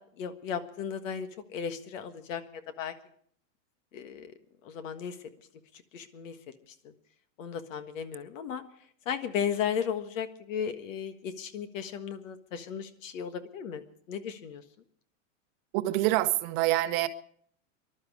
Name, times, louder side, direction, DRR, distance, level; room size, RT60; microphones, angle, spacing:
voice 1, 0.2-2.4 2.8-2.9 3.9-4.3 4.6-5.2 5.9-6.4 6.7-6.9 7.4-8.6 9.0-13.8 14.1-14.6, left 7 dB, 75° left, 9 dB, 1.7 m, -35 dB
voice 2, 15.7-17.1, right 16 dB, 45° right, 11 dB, 0.9 m, -26 dB
20.5 x 12.0 x 4.9 m, 0.62 s
supercardioid pair, 145°, 39 cm